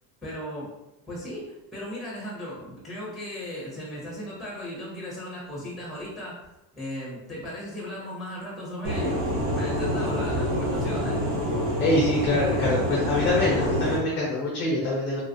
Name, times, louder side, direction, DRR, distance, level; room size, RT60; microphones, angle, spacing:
voice 1, 0.2-0.7 1.1-6.4 6.8-11.2, equal, ahead, -6 dB, 0.8 m, -36 dB
sound 1, 8.8-14.0, equal, 85° right, 1.4 m, -26 dB
voice 2, 11.8-15.2, left 2 dB, 25° left, -5 dB, 0.4 m, -24 dB
3.4 x 2.3 x 2.5 m, 0.97 s
cardioid pair, 170°, 45 cm